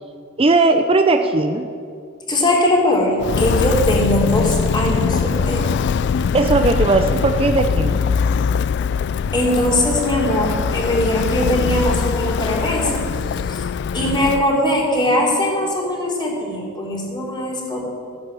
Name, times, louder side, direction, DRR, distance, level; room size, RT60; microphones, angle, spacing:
voice 1, 0.4-1.7 6.3-8.0, right 3 dB, 30° right, 6 dB, 0.6 m, -17 dB
voice 2, 2.3-5.7 9.3-13.1 13.5-17.9, left 1 dB, 20° left, -2 dB, 3.0 m, -20 dB
Walk footsteps, 3.2-14.5, left 6 dB, 60° left, 0.3 m, -21 dB
14.5 x 9.7 x 7.7 m, 2.4 s
head